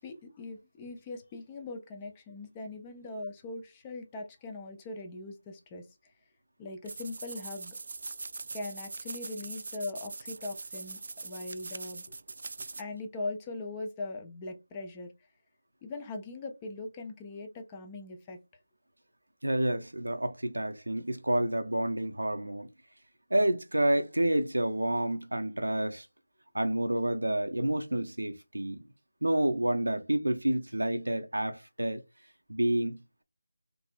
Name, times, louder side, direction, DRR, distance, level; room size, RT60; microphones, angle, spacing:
voice 1, 0.0-5.9 6.6-7.8 8.5-12.0 12.6-15.1 15.8-18.4, left 2 dB, 15° left, 0.6 m, -40 dB
sound 1, 6.8-12.8, right 3 dB, 50° right, 0.3 m, -42 dB
voice 2, 19.4-22.7 23.3-26.1 26.5-28.8 29.2-32.0 32.5-33.2, right 1 dB, 80° right, 0.7 m, -29 dB
3.9 x 2.8 x 2.3 m
figure-of-eight pair, 160°, 0 cm